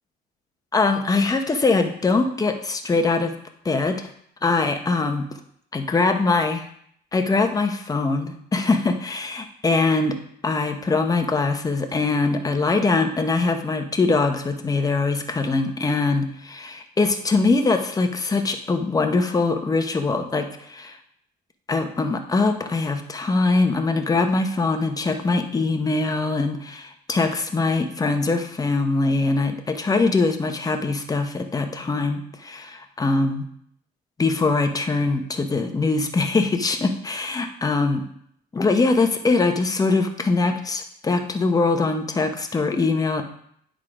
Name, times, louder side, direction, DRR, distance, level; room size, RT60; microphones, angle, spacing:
voice 1, 0.7-3.3 3.6-4.1 4.4-5.2 5.7-6.6 7.1-10.1 10.4-21.0 21.7-33.4 34.2-38.0 38.5-43.2, left 3 dB, 20° left, 6 dB, 0.9 m, -22 dB
9.7 x 3.8 x 4.9 m, 0.69 s
cardioid pair, 110°, 17 cm